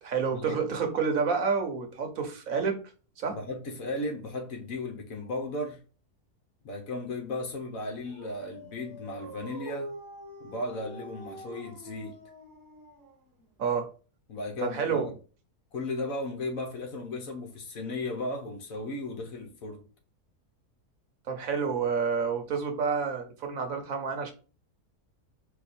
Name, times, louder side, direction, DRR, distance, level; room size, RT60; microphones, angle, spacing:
voice 1, 0.0-2.8 3.2-3.4 13.6-13.9 14.6-15.1 21.3-24.3, right 5 dB, 65° right, 1.2 m, -29 dB
voice 2, 3.3-5.8 6.6-9.9 10.4-12.2 14.3-15.1 15.7-19.8, left 2 dB, 65° left, 1.4 m, -35 dB
Dog, 7.8-13.5, right 1 dB, 15° right, 1.0 m, -45 dB
4.6 x 2.5 x 4.2 m
omnidirectional pair, 1.6 m